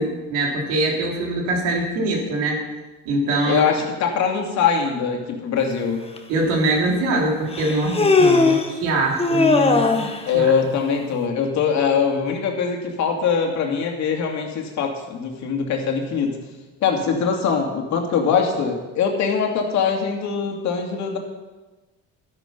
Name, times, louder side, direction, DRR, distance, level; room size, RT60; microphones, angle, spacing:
voice 1, 0.0-2.6 3.0-3.6 6.3-10.1 10.3-10.5, right 2 dB, 85° right, 0 dB, 3.4 m, -23 dB
voice 2, 3.5-6.1 10.2-16.4 16.8-21.2, left 6 dB, 65° left, 2 dB, 2.6 m, -22 dB
Human voice, 6.2-6.3 7.5-8.7 9.2-10.2, left 3 dB, 20° left, 1.4 m, -18 dB
12.0 x 10.5 x 5.4 m, 1.2 s
cardioid pair, 100°, 30 cm